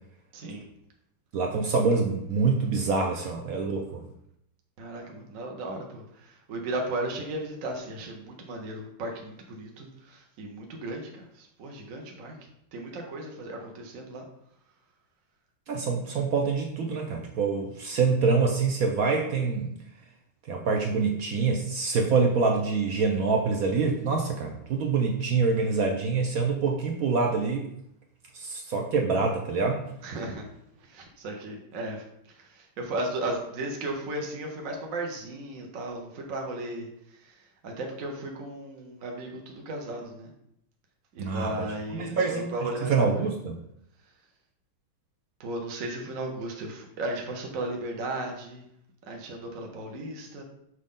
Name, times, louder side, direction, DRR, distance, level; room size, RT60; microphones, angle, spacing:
voice 1, 0.3-0.7 4.8-12.4 12.7-14.2 30.0-30.5 30.8-36.9 37.2-40.3 41.1-43.3 45.4-48.7 49.1-50.4, right 1 dB, 55° right, 1 dB, 1.0 m, -35 dB
voice 2, 1.3-4.0 15.7-19.8 20.5-27.7 28.3-29.9 41.2-41.7 41.9-42.5 42.8-43.6, right 4 dB, 70° right, 2 dB, 0.8 m, -26 dB
6.4 x 4.1 x 3.7 m, 0.75 s
omnidirectional pair, 2.2 m